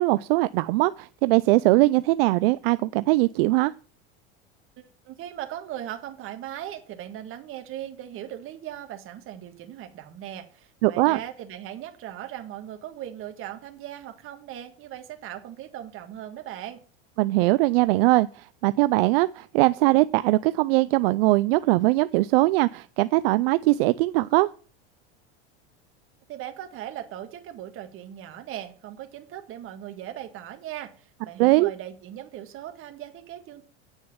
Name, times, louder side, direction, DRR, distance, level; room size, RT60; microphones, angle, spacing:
voice 1, 0.0-3.7 10.8-11.2 17.2-24.5 31.4-31.7, right 20 dB, 70° right, 15 dB, 0.5 m, -21 dB
voice 2, 4.8-16.8 26.3-33.6, right 11 dB, 45° right, 7 dB, 1.8 m, -39 dB
9.1 x 6.4 x 7.0 m, 0.39 s
supercardioid pair, 120°, 30 cm